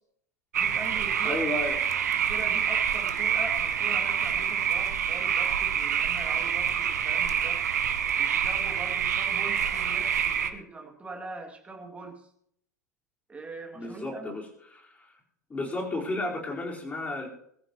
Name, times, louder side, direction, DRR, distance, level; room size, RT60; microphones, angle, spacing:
sound 1, 0.5-10.5, right 8 dB, 65° right, 1.3 m, -27 dB
voice 1, 0.6-1.4 2.3-7.6 8.2-12.3 13.3-14.3, right 3 dB, 15° right, 3 dB, 2.7 m, -42 dB
voice 2, 1.2-1.8 13.7-15.2 15.5-17.3, left 2 dB, 15° left, -2 dB, 4.6 m, -33 dB
22.5 x 14.0 x 3.1 m, 0.71 s
figure-of-eight pair, 90°, 9 cm